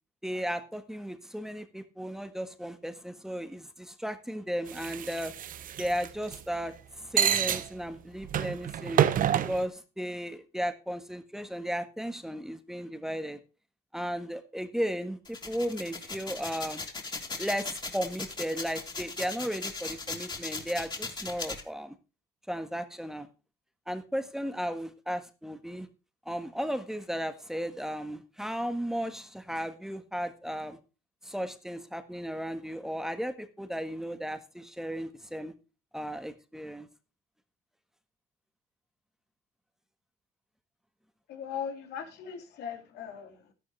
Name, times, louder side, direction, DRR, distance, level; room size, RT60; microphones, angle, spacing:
voice 1, 0.2-5.3 5.8-9.0 9.5-13.4 13.9-16.8 17.4-21.9 22.5-23.3 23.9-25.9 26.2-30.8 31.2-35.5 35.9-36.9, equal, 5° right, 1.5 m, -35 dB
sound 1, 4.7-6.4 7.2-7.7 8.2-9.6, right 10 dB, 55° right, 1.0 m, -28 dB
sound 2, 15.2-21.6, left 3 dB, 25° left, 3.4 m, -38 dB
voice 2, 41.3-43.5, left 7 dB, 80° left, 2.9 m, -39 dB
13.0 x 11.0 x 3.3 m
cardioid pair, 110°, 17 cm